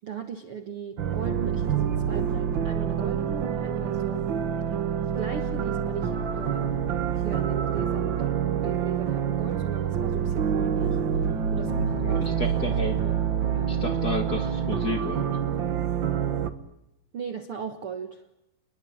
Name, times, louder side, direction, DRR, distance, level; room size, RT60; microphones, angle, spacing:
voice 1, 0.0-4.3 5.1-6.7 7.2-12.7 13.0-13.2 13.4-13.8 17.1-18.3, right 7 dB, 55° right, 7 dB, 1.7 m, -37 dB
Horror Background Music, 1.0-16.5, right 8 dB, 85° right, 1.0 m, -27 dB
voice 2, 11.6-13.0 13.7-15.3, left 2 dB, 30° left, 5 dB, 2.4 m, -32 dB
28.5 x 21.5 x 8.6 m, 0.88 s
omnidirectional pair, 4.3 m